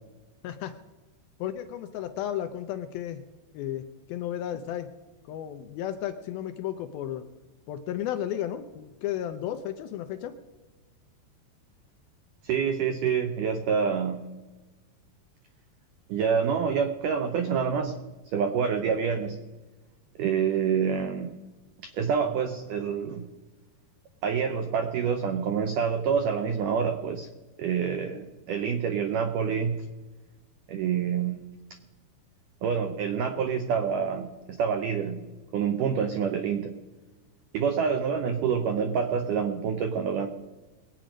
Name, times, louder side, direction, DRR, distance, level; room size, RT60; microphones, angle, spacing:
voice 1, 0.4-0.8 1.4-3.2 3.5-4.9 5.3-7.2 7.7-10.3, left 11 dB, 80° left, 8 dB, 2.2 m, -33 dB
voice 2, 12.4-14.3 16.1-18.0 18.3-19.4 20.2-21.3 21.8-23.3 24.2-27.3 27.6-29.9 30.7-31.4 32.6-34.3 34.6-35.2 35.5-36.7 37.5-40.3, right 7 dB, 85° right, 7 dB, 1.8 m, -27 dB
22.0 x 8.8 x 5.1 m, 1.2 s
omnidirectional pair, 4.8 m